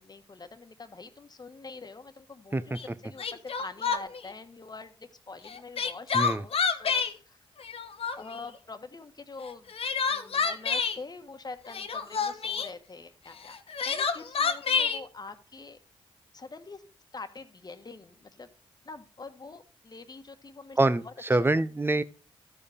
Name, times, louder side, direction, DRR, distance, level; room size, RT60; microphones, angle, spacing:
voice 1, 0.0-7.4 8.1-9.7 10.1-13.6 13.8-15.8 16.3-16.8 17.1-18.5 18.8-20.8 21.0-21.5, left 4 dB, 40° left, 1.4 m, -45 dB
Crying sobbing, 2.8-2.9 3.2-4.2 5.5-7.1 7.6-8.4 9.5-11.0 11.7-12.7 13.5-15.0, left 5 dB, 65° left, 1.1 m, -28 dB
voice 2, 6.1-6.4 20.8-22.0, right 2 dB, 20° right, 0.8 m, -25 dB
13.0 x 5.0 x 4.9 m
supercardioid pair, 50°, 11 cm